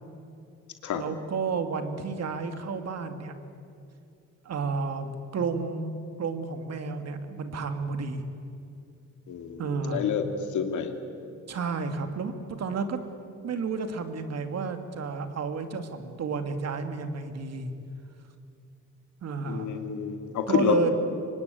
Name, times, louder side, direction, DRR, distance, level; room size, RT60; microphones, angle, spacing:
voice 1, 0.9-3.3 4.4-5.9 6.2-8.2 9.6-10.1 11.5-13.0 13.4-17.7 19.2-19.8 20.5-20.9, right 5 dB, 55° right, 8 dB, 2.4 m, -31 dB
voice 2, 9.3-9.6 9.9-10.2 10.5-10.9 19.5-20.9, left 8 dB, 75° left, 6 dB, 2.6 m, -28 dB
24.5 x 19.5 x 9.4 m, 2.5 s
cardioid pair, 90°, 30 cm